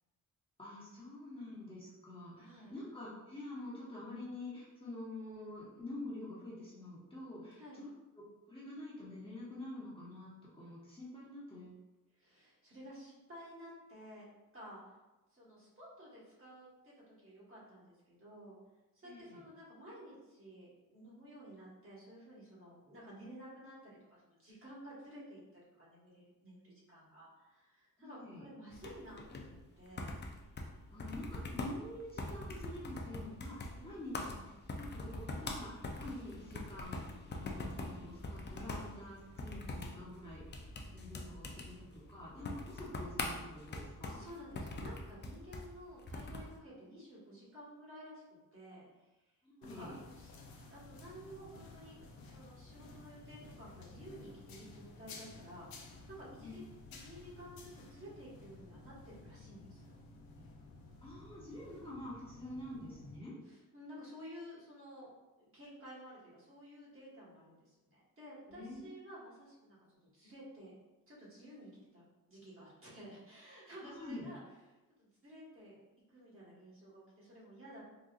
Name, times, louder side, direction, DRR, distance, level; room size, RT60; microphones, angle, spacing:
voice 1, 0.6-7.9 8.5-11.8 19.0-19.4 28.0-28.5 30.9-34.3 34.6-44.2 49.4-50.0 56.4-56.6 61.0-63.4 68.5-68.9 73.8-74.3, left 1 dB, 15° left, -9 dB, 1.1 m, -47 dB
voice 2, 2.4-2.7 7.6-7.9 12.1-14.2 14.5-14.9 15.3-18.6 18.9-30.2 30.5-30.8 31.1-31.3 33.7-34.2 44.0-48.2 48.5-49.1 49.7-56.6 57.0-60.0 63.4-65.1 65.4-70.7 71.1-72.0 72.3-74.4 75.0-75.8 76.1-77.8, equal, 40° right, -7 dB, 1.4 m, -53 dB
sound 1, 28.7-46.5, left 2 dB, 30° left, 0.4 m, -44 dB
sound 2, 49.6-63.2, left 3 dB, 90° left, 0.5 m, -54 dB
3.9 x 2.4 x 2.4 m, 1.1 s
cardioid pair, 85°, 35 cm